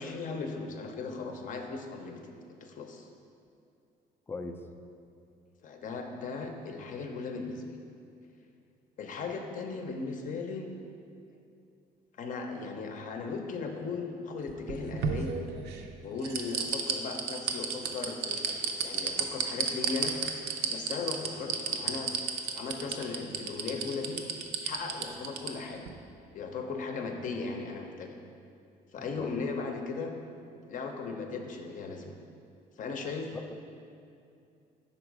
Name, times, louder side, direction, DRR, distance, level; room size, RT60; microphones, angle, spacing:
voice 1, 0.0-2.2 2.5-3.1 5.6-7.8 9.0-10.7 12.2-15.4 16.0-20.1 20.7-22.1 22.5-24.2 24.6-25.9 26.3-28.1 28.9-30.1 30.7-32.1 32.8-33.3, left 4 dB, 50° left, 4 dB, 0.7 m, -37 dB
voice 2, 4.3-4.6 29.0-29.3 33.3-33.5, left 3 dB, 15° left, 5 dB, 0.4 m, -40 dB
sound 1, 14.5-15.8 16.2-25.5 25.9-26.0, right 7 dB, 75° right, 0.5 m, -31 dB
5.8 x 4.0 x 4.7 m, 2.5 s
cardioid pair, 110°, 17 cm